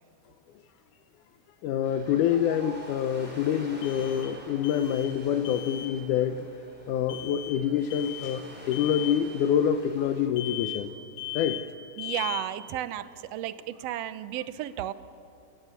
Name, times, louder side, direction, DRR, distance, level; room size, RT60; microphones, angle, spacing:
sound 1, 0.6-0.7 3.8-4.4 4.6-5.2 5.4-5.9 7.1-7.6 7.9-8.4 8.7-9.2 10.4-10.9 11.2-11.7 12.0-12.5, left 15 dB, 55° left, 2.5 m, -38 dB
voice 1, 1.6-6.5 6.9-10.9 11.4-11.6, left 9 dB, 85° left, 7 dB, 2.3 m, -26 dB
Ocean, 1.8-10.3, right 1 dB, 5° right, 4.4 m, -47 dB
voice 2, 12.0-14.9, right 12 dB, 70° right, 13 dB, 1.6 m, -33 dB
29.5 x 17.0 x 8.2 m, 2.8 s
omnidirectional pair, 3.5 m